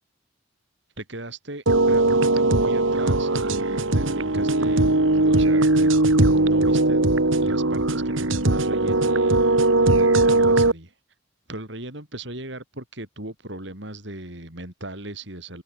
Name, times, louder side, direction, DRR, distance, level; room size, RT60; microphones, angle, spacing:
voice 1, 1.0-7.0 7.4-10.9 11.5-15.6, right 1 dB, 60° right, 5.6 m, -37 dB
sound 1, 1.7-10.7, right 2 dB, 75° right, 1.9 m, -19 dB
head